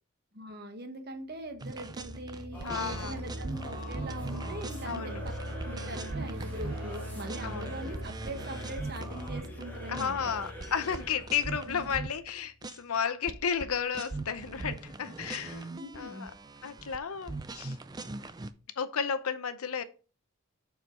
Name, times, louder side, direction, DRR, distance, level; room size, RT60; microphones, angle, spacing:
voice 1, 0.3-5.1 5.6-10.1 11.7-11.9 15.7-16.3, right 1 dB, 45° right, 1.2 m, -42 dB
sound 1, 1.5-12.2, equal, 60° right, 1.5 m, -41 dB
sound 2, 1.6-7.0 7.3-9.6 9.9-12.3 12.6-13.0 13.3-18.5, right 3 dB, 20° right, 0.4 m, -41 dB
Singing / Musical instrument, 2.5-11.4, left 1 dB, 10° left, 1.5 m, -47 dB
voice 2, 2.6-3.2 4.8-5.2 7.4-7.7 9.9-15.7 16.0-16.3 16.6-17.8 18.8-19.8, left 7 dB, 75° left, 0.7 m, -33 dB
6.5 x 4.6 x 5.1 m
head